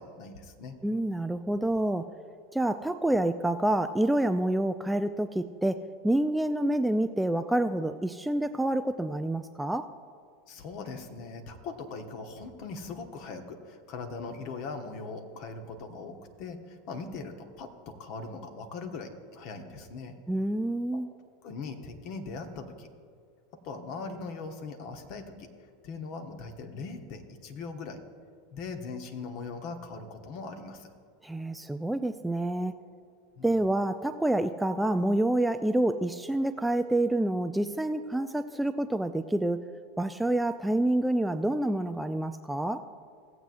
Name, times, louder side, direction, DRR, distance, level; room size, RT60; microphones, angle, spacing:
voice 1, 0.0-0.8 10.5-20.1 21.4-22.9 23.6-25.5 25.8-28.0 28.5-30.9 33.4-33.5, left 4 dB, 50° left, 5 dB, 1.1 m, -40 dB
voice 2, 0.8-2.1 2.5-9.9 20.3-21.1 31.2-32.7 33.4-39.6 40.0-42.8, right 1 dB, 5° right, 9 dB, 0.4 m, -28 dB
17.0 x 7.9 x 2.6 m, 2.1 s
figure-of-eight pair, 85°, 0 cm